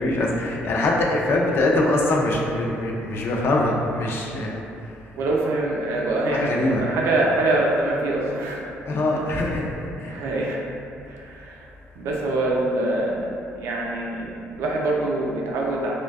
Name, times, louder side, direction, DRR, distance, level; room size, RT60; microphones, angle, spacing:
voice 1, 0.0-4.6 4.9-5.0 6.2-6.8 8.9-10.2, left 2 dB, 55° left, -1 dB, 0.4 m, -23 dB
voice 2, 5.2-8.6 10.0-10.6 11.1-11.6 12.0-16.0, right 2 dB, 75° right, -2 dB, 0.4 m, -24 dB
2.5 x 2.2 x 2.2 m, 2.5 s
cardioid pair, 100°, 5 cm